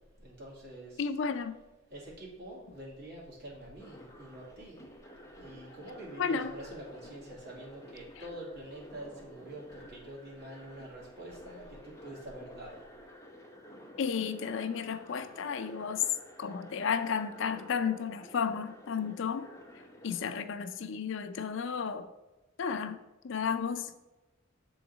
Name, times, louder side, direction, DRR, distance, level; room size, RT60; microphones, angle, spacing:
voice 1, 0.0-1.4 1.9-4.9 5.4-12.9, right 1 dB, 55° right, -4 dB, 2.0 m, -46 dB
voice 2, 1.0-1.6 6.2-6.5 14.0-16.0 16.4-19.5 20.0-22.1 22.6-23.0 23.2-23.9, left 6 dB, 65° left, 10 dB, 0.5 m, -33 dB
sound 1, 3.8-20.4, equal, 15° left, 0.8 m, -52 dB
6.9 x 3.9 x 3.9 m, 1.0 s
head